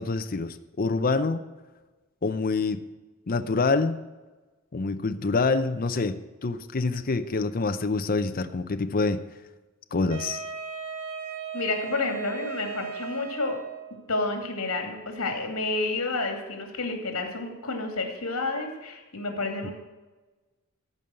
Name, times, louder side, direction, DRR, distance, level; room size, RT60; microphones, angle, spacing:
voice 1, 0.0-1.4 2.2-2.8 3.3-4.0 4.7-9.2 9.9-10.4 19.6-19.7, left 3 dB, 40° left, 9 dB, 0.6 m, -26 dB
Wind instrument woodwind instrument, 10.1-14.0, right 6 dB, 85° right, 5.1 m, -36 dB
voice 2, 11.5-13.6 14.1-19.7, left 3 dB, 70° left, 4 dB, 2.6 m, -30 dB
14.5 x 5.4 x 7.7 m, 1.2 s
head